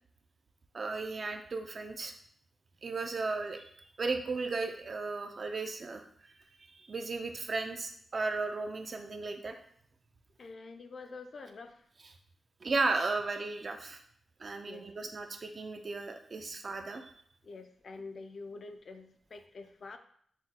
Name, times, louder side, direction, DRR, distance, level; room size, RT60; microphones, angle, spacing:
voice 1, 0.7-2.1 2.8-3.7 4.0-6.0 6.6-9.5 12.0-12.1 12.6-14.0 14.4-17.1, right 3 dB, 45° right, 5 dB, 0.4 m, -35 dB
voice 2, 10.4-11.8 14.7-14.8 17.4-20.0, left 3 dB, 55° left, 7 dB, 0.4 m, -46 dB
6.0 x 2.2 x 2.8 m, 0.62 s
wide cardioid pair, 125°, 0 cm